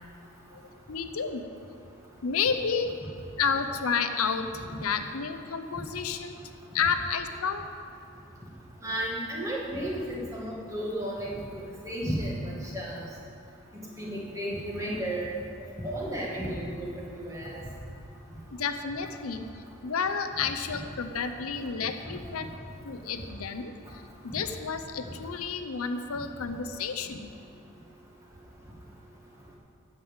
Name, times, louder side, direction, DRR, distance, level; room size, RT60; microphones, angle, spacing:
voice 1, 0.9-1.5 2.2-2.9 3.4-6.4 6.7-7.6 18.5-22.5 22.8-27.3, left 6 dB, 75° left, 7 dB, 0.6 m, -31 dB
voice 2, 8.8-11.4 11.8-13.0 14.0-15.3 15.8-17.6, right 1 dB, 15° right, -5 dB, 1.9 m, -33 dB
12.5 x 5.4 x 7.9 m, 2.5 s
head